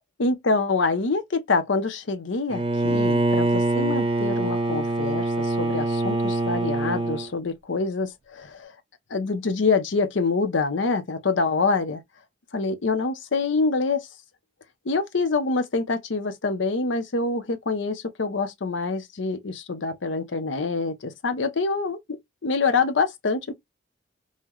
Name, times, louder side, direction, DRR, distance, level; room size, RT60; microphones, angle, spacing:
voice 1, 0.2-8.7 9.1-12.0 12.5-14.1 14.9-23.5, left 4 dB, 70° left, 0.7 m, -26 dB
Bowed string instrument, 2.5-7.3, right 2 dB, 30° right, 0.5 m, -24 dB
5.5 x 2.1 x 3.1 m
head